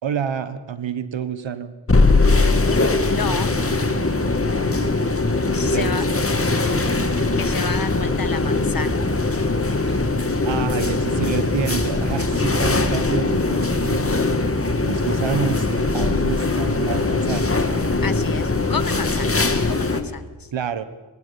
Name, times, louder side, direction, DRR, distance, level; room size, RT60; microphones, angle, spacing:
voice 1, 0.0-1.7 5.6-6.2 9.9-10.0 10.4-14.1 14.8-15.7 15.9-17.5 20.5-20.8, right 7 dB, 85° right, 13 dB, 1.5 m, -28 dB
sound 1, 1.9-20.0, left 3 dB, 30° left, 2.4 m, -21 dB
voice 2, 3.1-3.5 5.5-6.1 7.4-9.0 18.0-20.5, left 5 dB, 50° left, 13 dB, 1.5 m, -31 dB
23.5 x 19.0 x 7.2 m, 1.2 s
cardioid pair, 45°, 44 cm